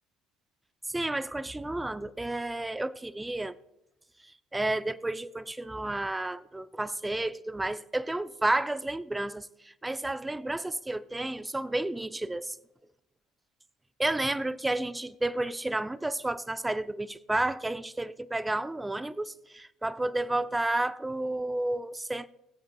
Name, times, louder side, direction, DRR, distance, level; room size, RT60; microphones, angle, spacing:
voice 1, 0.9-3.5 4.5-12.6 14.0-22.3, right 2 dB, 10° right, 0.4 m, -31 dB
23.0 x 7.7 x 2.3 m
supercardioid pair, 90°, 0 cm